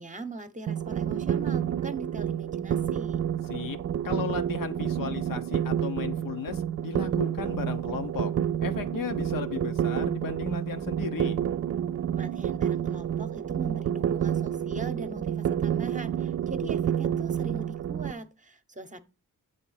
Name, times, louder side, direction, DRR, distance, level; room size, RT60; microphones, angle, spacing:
voice 1, 0.0-3.2 12.1-19.0, right 2 dB, 20° right, 0.9 m, -41 dB
sound 1, 0.7-18.1, right 9 dB, 45° right, 0.4 m, -29 dB
voice 2, 4.0-8.3 8.6-11.4, left 6 dB, 70° left, 0.9 m, -35 dB
7.5 x 3.5 x 5.7 m
cardioid pair, 60°, 34 cm